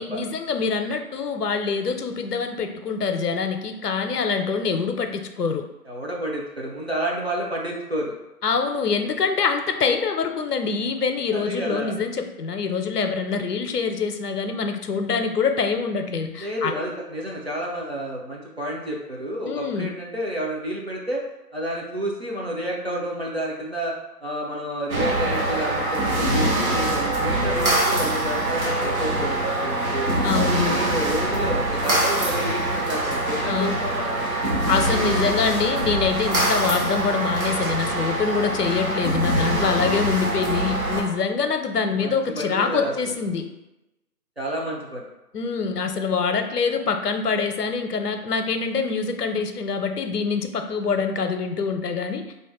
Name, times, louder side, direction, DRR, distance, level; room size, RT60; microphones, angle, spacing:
voice 1, 0.0-5.7 8.4-16.7 19.4-19.9 30.2-30.8 33.5-33.8 34.7-43.5 45.3-52.3, left 5 dB, 75° left, 6 dB, 0.5 m, -25 dB
voice 2, 5.9-8.2 11.3-11.9 16.3-21.2 21.5-23.9 24.2-30.1 30.3-34.2 42.0-43.1 44.4-45.1, right 1 dB, 45° right, -4 dB, 0.5 m, -30 dB
sound 1, 24.9-41.0, right 1 dB, 60° right, 0.8 m, -24 dB
2.5 x 2.0 x 3.6 m, 0.98 s
figure-of-eight pair, 155°, 48 cm